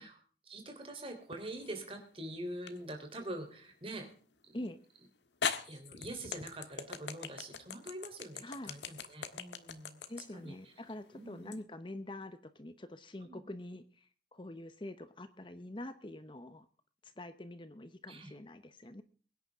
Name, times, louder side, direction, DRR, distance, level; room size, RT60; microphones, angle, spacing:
voice 1, 0.0-4.1 4.4-4.6 5.6-10.7 11.1-11.6 13.2-13.4 18.1-18.3, right 1 dB, 30° right, 5 dB, 3.6 m, -45 dB
sound 1, 1.3-1.9 2.7-2.8 4.7-4.8 5.4-11.6, left 6 dB, 85° left, 1.5 m, -40 dB
voice 2, 8.4-8.7 10.1-16.7 17.0-19.0, left 1 dB, 30° left, 11 dB, 0.9 m, -45 dB
23.0 x 10.0 x 3.6 m, 0.41 s
head